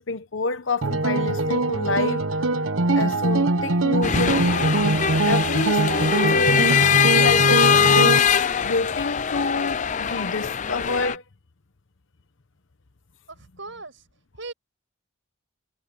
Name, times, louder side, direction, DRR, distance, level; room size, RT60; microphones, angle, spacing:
voice 1, 0.0-2.2 2.9-4.5 5.3-6.7 7.1-8.3 8.6-11.2, left 3 dB, 70° left, 1.0 m, -28 dB
sound 1, 0.8-8.2, right 2 dB, 85° right, 1.2 m, -22 dB
sound 2, 4.0-11.1, left 7 dB, 35° left, 0.5 m, -21 dB
voice 2, 13.3-14.1 14.3-14.5, right 3 dB, 70° right, 6.7 m, -38 dB
head